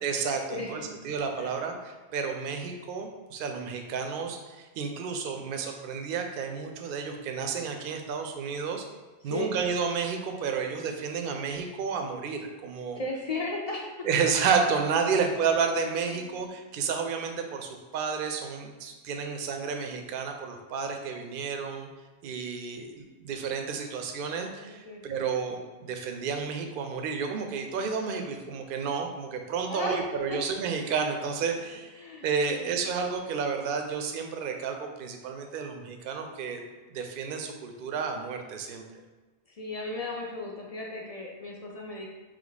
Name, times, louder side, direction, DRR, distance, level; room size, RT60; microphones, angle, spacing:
voice 1, 0.0-8.8 9.2-13.0 14.0-21.9 22.2-36.6 36.9-38.9, right 5 dB, 60° right, 5 dB, 0.6 m, -31 dB
voice 2, 9.2-9.6 13.0-14.0 16.0-16.4 24.7-25.2 29.7-30.0 30.3-30.4 32.0-32.8 39.5-42.1, left 2 dB, 45° left, -2 dB, 0.5 m, -36 dB
3.3 x 3.3 x 3.9 m, 1.2 s
omnidirectional pair, 1.1 m